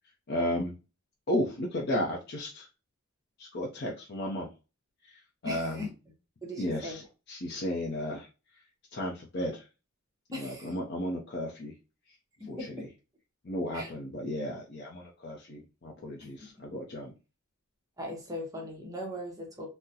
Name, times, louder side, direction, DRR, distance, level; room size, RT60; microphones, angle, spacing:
voice 1, 0.3-0.8 1.3-2.7 3.4-4.5 5.0-5.9 6.6-7.0 7.3-8.3 8.9-9.6 10.4-11.7 12.5-12.6 13.4-17.1, left 1 dB, 45° left, -1 dB, 0.5 m, -34 dB
voice 2, 5.4-5.9 6.4-7.1 10.3-10.8 12.4-12.9 13.7-13.9 16.4-16.5 18.0-19.7, left 1 dB, 15° right, 0 dB, 0.7 m, -39 dB
3.7 x 2.0 x 2.7 m, 0.30 s
head